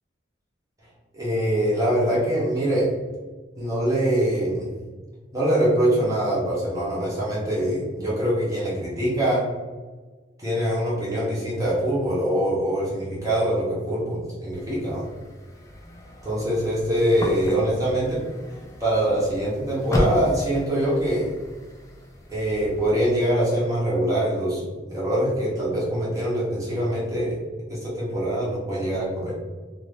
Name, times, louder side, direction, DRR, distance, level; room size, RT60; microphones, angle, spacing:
voice 1, 1.1-2.9 3.6-4.8 5.3-9.5 10.4-15.1 16.2-18.2 18.8-21.3 22.3-27.3 27.7-29.3, right 1 dB, 20° right, -7 dB, 0.8 m, -24 dB
sound 1, 14.5-23.0, equal, 15° left, 0.3 m, -34 dB
2.6 x 2.5 x 3.3 m, 1.4 s
head